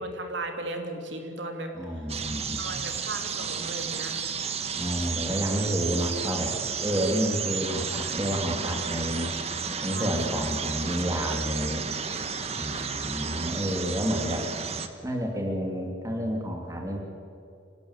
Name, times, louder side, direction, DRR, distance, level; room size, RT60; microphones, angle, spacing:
voice 1, 0.0-1.7 2.6-4.3 9.9-10.5 12.7-12.9, right 2 dB, 70° right, 4 dB, 2.9 m, -36 dB
voice 2, 1.7-2.9 4.8-6.5 6.8-9.3 9.8-11.9 12.6-14.4 15.0-17.0, equal, 15° right, 1 dB, 3.0 m, -29 dB
sound 1, 2.1-14.9, right 6 dB, 35° right, 1.3 m, -32 dB
26.0 x 18.0 x 8.3 m, 2.5 s
head